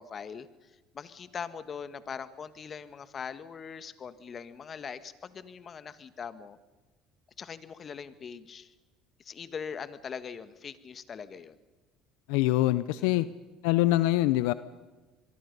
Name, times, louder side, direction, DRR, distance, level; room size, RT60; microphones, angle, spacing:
voice 1, 0.0-6.6 7.4-8.7 9.2-11.6 13.0-13.3, left 6 dB, 40° left, 12 dB, 1.6 m, -41 dB
voice 2, 12.3-13.3 13.6-14.5, left 16 dB, 80° left, 15 dB, 0.6 m, -24 dB
27.0 x 22.5 x 5.5 m, 1.2 s
supercardioid pair, 80°, 0 cm